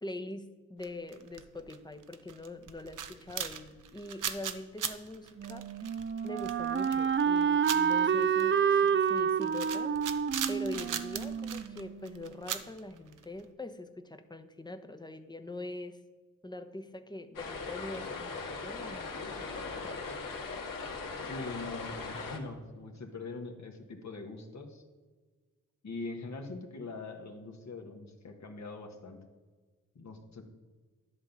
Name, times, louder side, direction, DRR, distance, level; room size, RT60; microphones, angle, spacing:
voice 1, 0.0-5.7 6.2-10.0 10.5-16.0 16.4-20.0, left 1 dB, 10° left, 7 dB, 1.0 m, -43 dB
sound 1, 0.8-1.8 2.0-13.4, right 8 dB, 60° right, 0.9 m, -39 dB
Wind instrument woodwind instrument, 5.4-12.2, right 7 dB, 35° right, 0.5 m, -29 dB
sound 2, 17.4-22.4, left 4 dB, 65° left, 1.8 m, -39 dB
voice 2, 21.3-24.8 25.8-29.2 29.9-30.4, left 3 dB, 50° left, 3 dB, 1.5 m, -42 dB
11.0 x 3.8 x 7.1 m, 1.4 s
supercardioid pair, 45°, 35 cm